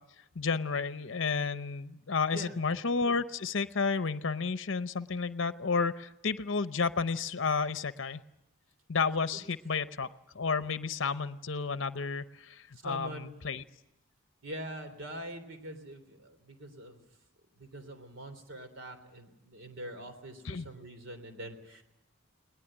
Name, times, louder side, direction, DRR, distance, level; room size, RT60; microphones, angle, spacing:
voice 1, 0.4-8.2 8.9-10.1 10.3-13.6 20.4-20.7, left 5 dB, 60° left, 13 dB, 0.7 m, -31 dB
voice 2, 12.8-13.4 14.4-17.0 17.6-21.8, right 1 dB, 65° right, 8 dB, 3.4 m, -44 dB
20.0 x 19.5 x 9.9 m, 0.92 s
head